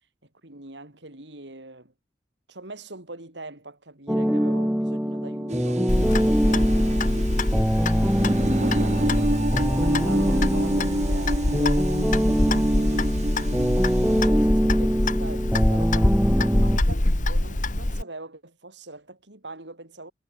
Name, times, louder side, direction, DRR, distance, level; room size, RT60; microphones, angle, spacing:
voice 1, 0.4-1.9 2.5-6.0 6.3-7.5 8.4-13.0 13.9-20.1, right 2 dB, 80° right, 4.7 m, -42 dB
sound 1, 4.1-16.8, equal, 5° right, 1.1 m, -24 dB
sound 2, 5.5-14.3, right 1 dB, 40° right, 1.7 m, -29 dB
Clock, 5.9-18.0, left 1 dB, 45° left, 1.7 m, -25 dB
head